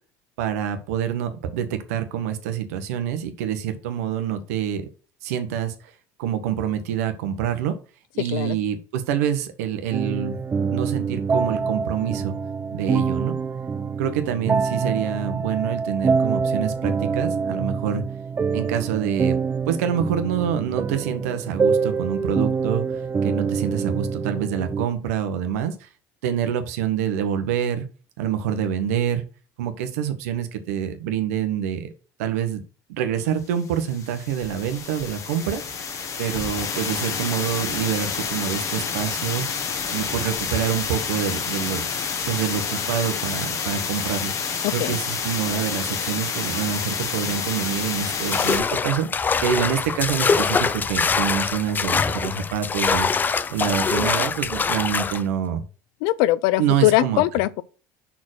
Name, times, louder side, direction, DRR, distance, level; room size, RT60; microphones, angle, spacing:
voice 1, 0.4-4.9 5.2-5.7 6.2-7.7 8.1-10.4 10.7-12.3 12.7-13.4 14.0-18.0 18.5-19.4 19.7-25.9 26.2-27.9 28.2-29.2 29.6-31.9 32.2-32.6 32.9-35.6 36.2-39.4 39.9-41.8 42.3-44.3 44.7-53.1 53.5-55.6 56.6-57.2, right 9 dB, 90° right, 1.2 m, -26 dB
sound 1, 9.9-24.9, right 5 dB, 25° right, 0.5 m, -25 dB
sound 2, 33.6-48.6, left 6 dB, 40° left, 1.4 m, -29 dB
voice 2, 44.6-45.0 56.0-57.6, left 16 dB, 75° left, 0.6 m, -21 dB
sound 3, 48.3-55.2, left 5 dB, 25° left, 0.5 m, -23 dB
5.8 x 4.4 x 6.4 m
supercardioid pair, 105°, 8 cm